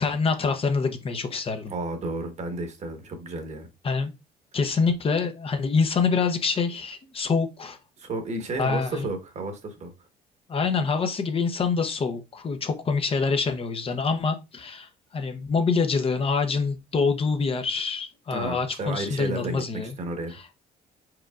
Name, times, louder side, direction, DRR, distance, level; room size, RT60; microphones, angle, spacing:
voice 1, 0.0-1.7 3.8-4.1 4.5-7.8 8.5-9.1 10.5-19.9 20.3-20.5, left 4 dB, 35° left, 0.7 m, -26 dB
voice 2, 1.7-3.7 8.0-9.9 18.3-20.4, right 2 dB, 40° right, 1.2 m, -32 dB
4.8 x 4.4 x 2.4 m
cardioid pair, 110°, 17 cm